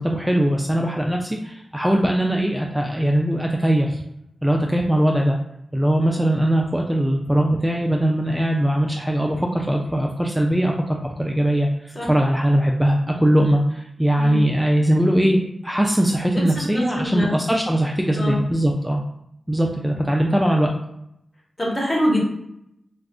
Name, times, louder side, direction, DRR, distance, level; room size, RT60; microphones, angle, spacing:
voice 1, 0.0-4.0 4.4-5.4 5.7-19.0 19.5-20.7, right 1 dB, 5° right, 1 dB, 0.3 m, -20 dB
voice 2, 16.7-17.3 18.1-18.4 21.6-22.2, left 1 dB, 30° left, -3 dB, 1.1 m, -24 dB
2.4 x 2.3 x 3.5 m, 0.80 s
cardioid pair, 55°, 0 cm